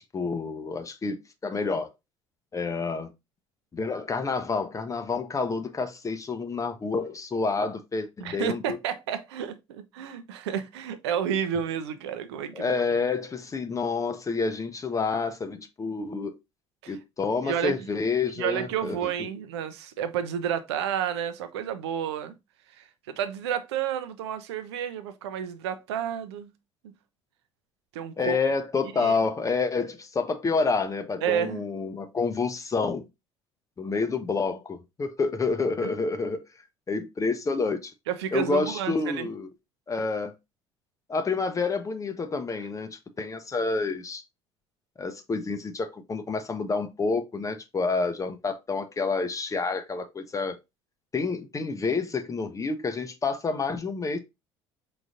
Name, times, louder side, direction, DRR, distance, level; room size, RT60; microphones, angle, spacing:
voice 1, 0.0-1.9 2.5-3.1 3.7-8.8 12.5-16.4 16.9-19.0 28.2-33.1 33.8-36.4 36.9-37.9 38.3-39.5 39.9-40.3 41.1-44.2 45.0-50.6 51.1-54.2, left 4 dB, 20° left, 0.6 m, -28 dB
voice 2, 8.2-12.7 16.8-17.0 17.4-17.8 18.4-22.3 22.7-26.5 27.9-28.4 29.0-29.2 31.2-31.6 35.8-35.9 38.1-39.3, right 9 dB, 65° right, 0.6 m, -30 dB
4.9 x 3.9 x 2.5 m
figure-of-eight pair, 60°, 15 cm